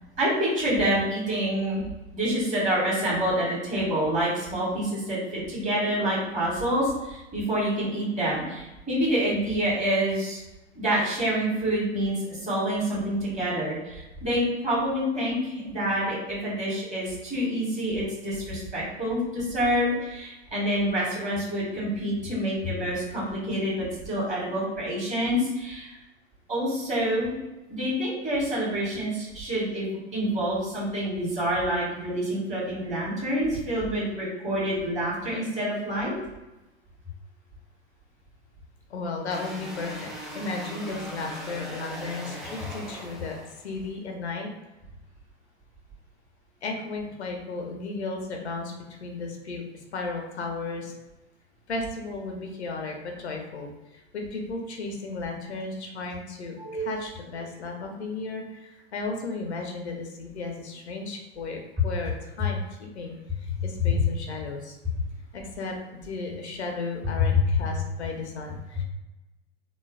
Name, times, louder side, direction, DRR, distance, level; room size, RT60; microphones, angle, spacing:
voice 1, 0.2-1.8 2.1-10.4 10.7-26.0 26.5-27.4 27.7-36.1 56.6-57.0, equal, 20° right, -6 dB, 1.5 m, -27 dB
voice 2, 38.9-44.5 46.6-50.9 51.7-64.8 65.3-68.8, left 3 dB, 80° left, 2 dB, 0.6 m, -35 dB
sound 1, 39.3-43.9, equal, ahead, 0.3 m, -40 dB
3.1 x 2.2 x 2.3 m, 1.0 s
figure-of-eight pair, 90°, 33 cm